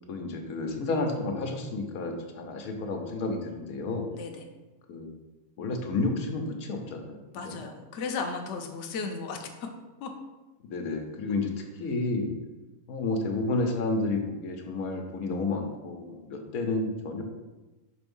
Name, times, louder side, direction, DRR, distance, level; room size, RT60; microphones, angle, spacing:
voice 1, 0.1-4.1 4.9-5.1 5.6-7.6 10.7-11.5 11.8-12.3 12.9-17.2, left 2 dB, 85° left, 3 dB, 1.2 m, -31 dB
voice 2, 4.1-4.4 7.3-9.5 10.0-10.1, left 4 dB, 60° left, 3 dB, 0.9 m, -35 dB
5.1 x 3.4 x 5.3 m, 1.1 s
omnidirectional pair, 1.5 m